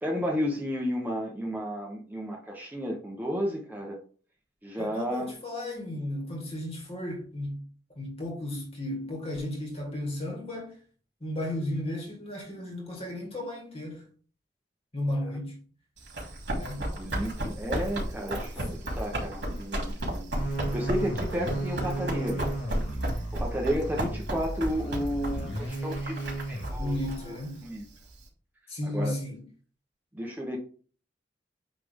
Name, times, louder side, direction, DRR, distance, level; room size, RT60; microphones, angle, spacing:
voice 1, 0.0-4.0 4.6-5.3 16.8-20.3 20.7-22.5 23.3-27.4 27.6-27.8 28.8-29.1 30.1-30.6, equal, 10° right, 0.8 m, -32 dB
voice 2, 4.7-7.7 7.9-10.8 11.2-14.1 14.9-15.6 16.5-16.9 26.8-27.7 28.7-29.4, left 1 dB, 35° left, 2.0 m, -34 dB
Run, 16.0-28.2, right 1 dB, 70° right, 3.1 m, -34 dB
sound 1, 20.3-27.1, right 1 dB, 75° left, 2.2 m, -34 dB
8.8 x 3.3 x 3.5 m
head